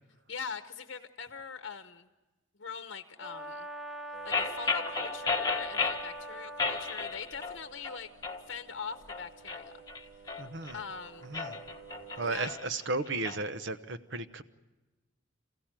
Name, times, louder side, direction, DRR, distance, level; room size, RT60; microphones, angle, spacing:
voice 1, 0.3-2.1 2.6-3.7 4.2-8.1 8.5-9.8 10.7-11.3 12.2-12.5, left 5 dB, 65° left, 8 dB, 0.9 m, -42 dB
Brass instrument, 3.2-7.1, right 1 dB, ahead, 0.8 m, -43 dB
sound 1, 4.1-12.5, right 8 dB, 35° right, 4.2 m, -53 dB
sound 2, 4.3-6.1 6.6-7.6 7.8-8.4 8.9-10.8 11.2-13.4, left 4 dB, 20° left, 1.5 m, -33 dB
voice 2, 10.4-10.8 11.2-11.6 12.2-14.4, right 3 dB, 65° right, 11 dB, 1.0 m, -34 dB
27.5 x 15.5 x 9.0 m, 1.1 s
head